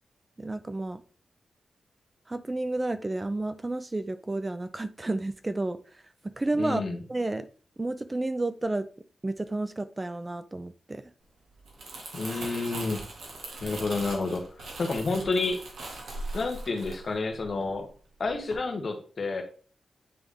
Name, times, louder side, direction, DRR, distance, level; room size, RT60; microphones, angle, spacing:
voice 1, 0.4-1.0 2.3-6.8 7.1-7.5 7.8-8.9 9.2-11.1, right 2 dB, 20° right, 11 dB, 0.4 m, -31 dB
voice 2, 6.6-7.0 12.1-13.0 13.6-15.6 16.3-17.9 18.2-19.4, left 3 dB, 50° left, 4 dB, 1.3 m, -30 dB
Crumpling crinkling, 11.5-17.9 18.2-18.5, right 2 dB, 75° right, 1.7 m, -40 dB
9.1 x 3.5 x 3.4 m, 0.41 s
wide cardioid pair, 110°, 0 cm